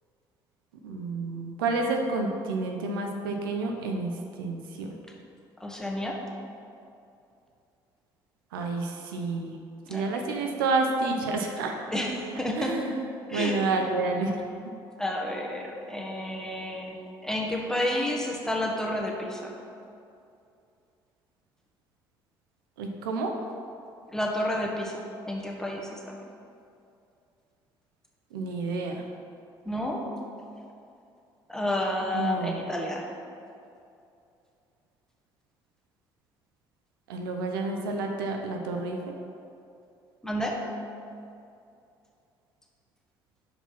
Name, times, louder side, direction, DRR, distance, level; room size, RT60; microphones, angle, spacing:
voice 1, 0.8-4.1 4.4-4.9 8.5-9.6 9.9-11.7 12.6-14.4 22.8-23.3 28.3-29.0 32.1-32.6 37.1-39.0, right 3 dB, 85° right, 3 dB, 0.6 m, -29 dB
voice 2, 5.6-6.2 9.9-10.3 11.9-12.9 13.3-13.6 15.0-19.5 24.1-26.2 29.6-30.0 31.5-33.1 40.2-40.6, left 1 dB, 5° left, -1 dB, 1.4 m, -30 dB
5.5 x 4.8 x 5.8 m, 2.6 s
hypercardioid pair, 55°, 11 cm